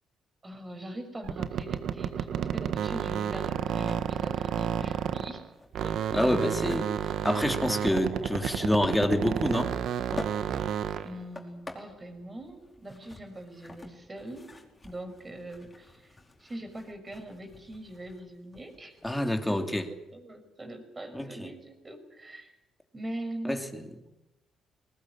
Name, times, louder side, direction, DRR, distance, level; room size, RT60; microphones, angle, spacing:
voice 1, 0.4-5.4 5.8-6.0 11.0-14.6 14.8-16.1 16.4-19.8 20.1-22.5 22.9-23.7, right 1 dB, 25° right, 6 dB, 6.1 m, -42 dB
sound 1, 1.2-5.5 5.7-11.2, right 9 dB, 75° right, 1.6 m, -31 dB
sound 2, 3.9-19.9, left 2 dB, 20° left, 4.7 m, -48 dB
voice 2, 6.1-6.9 7.2-9.7 19.0-19.9 21.1-21.5 23.4-23.9, left 1 dB, 5° left, 5 dB, 3.0 m, -27 dB
20.5 x 20.0 x 9.9 m, 0.98 s
cardioid pair, 90°, 0 cm